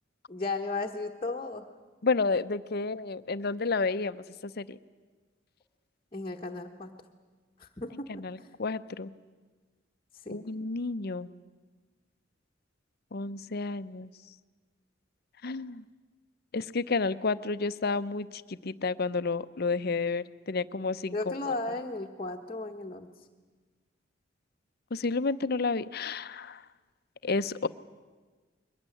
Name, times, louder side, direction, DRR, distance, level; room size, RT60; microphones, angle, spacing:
voice 1, 0.3-1.7 6.1-6.9 7.6-8.5 10.2-10.4 21.1-23.1, left 3 dB, 30° left, 0 dB, 1.2 m, -35 dB
voice 2, 2.0-4.8 8.1-9.1 10.3-11.3 13.1-14.1 15.4-15.8 16.5-21.2 24.9-26.6 27.2-27.7, left 4 dB, 55° left, 14 dB, 0.7 m, -31 dB
22.5 x 19.0 x 9.9 m, 1.4 s
head